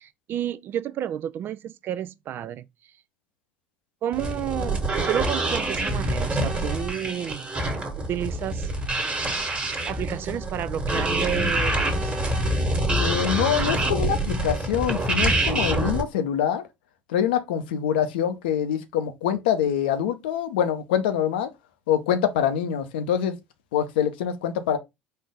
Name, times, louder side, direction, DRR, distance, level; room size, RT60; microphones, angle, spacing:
voice 1, 0.0-2.7 4.0-7.5 8.0-8.7 9.9-12.1, right 10 dB, 45° right, 0.3 m, -31 dB
sound 1, 4.1-16.0, right 1 dB, 20° right, 1.5 m, -26 dB
voice 2, 13.0-16.6 17.1-21.5 21.9-23.4 23.7-24.8, left 9 dB, 70° left, 0.6 m, -25 dB
4.4 x 2.6 x 3.5 m
figure-of-eight pair, 65°, 5 cm